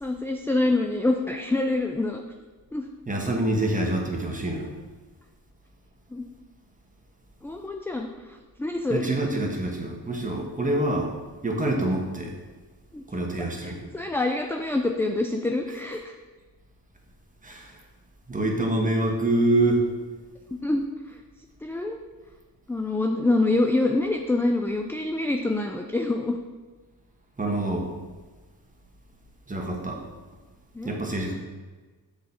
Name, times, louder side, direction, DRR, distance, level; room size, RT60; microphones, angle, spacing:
voice 1, 0.0-2.2 2.7-2.8 6.1-6.3 7.4-8.1 8.6-9.1 12.9-13.0 13.6-16.1 20.5-20.8 21.6-22.0 22.7-26.4 30.7-30.9, left 2 dB, 5° left, 3 dB, 0.4 m, -26 dB
voice 2, 3.1-4.7 8.9-11.1 11.4-12.3 13.1-13.9 17.4-17.8 18.3-19.9 27.4-27.9 29.5-30.0 30.8-31.3, right 1 dB, 20° right, 0 dB, 1.3 m, -26 dB
6.3 x 4.0 x 4.3 m, 1.3 s
cardioid pair, 60°, 39 cm